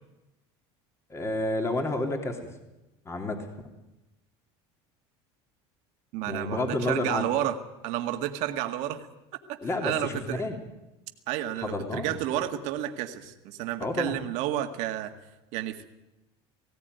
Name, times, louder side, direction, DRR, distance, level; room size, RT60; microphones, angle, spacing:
voice 1, 1.1-2.5 3.0-3.5 6.3-7.3 9.6-10.6 11.6-12.2 13.8-14.1, left 2 dB, 20° left, 3 dB, 3.1 m, -30 dB
voice 2, 6.1-7.6 7.8-9.1 9.5-10.4 11.3-15.1 15.5-15.8, right 12 dB, 65° right, 6 dB, 1.9 m, -31 dB
19.0 x 16.5 x 9.4 m, 0.99 s
supercardioid pair, 115°, 13 cm